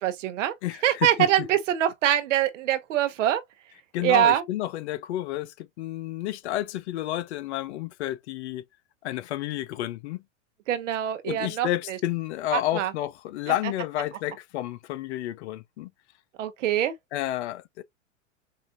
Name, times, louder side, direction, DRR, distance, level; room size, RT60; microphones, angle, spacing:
voice 1, 0.0-0.5 0.8-3.4 4.0-4.4 10.7-12.0 12.5-12.9 16.4-16.9, right 11 dB, 70° right, 0.9 m, -24 dB
voice 2, 0.6-1.5 3.9-8.6 9.0-10.2 11.2-15.9 17.1-17.8, left 14 dB, 60° left, 0.5 m, -30 dB
4.8 x 2.4 x 2.5 m
hypercardioid pair, 105°, 39 cm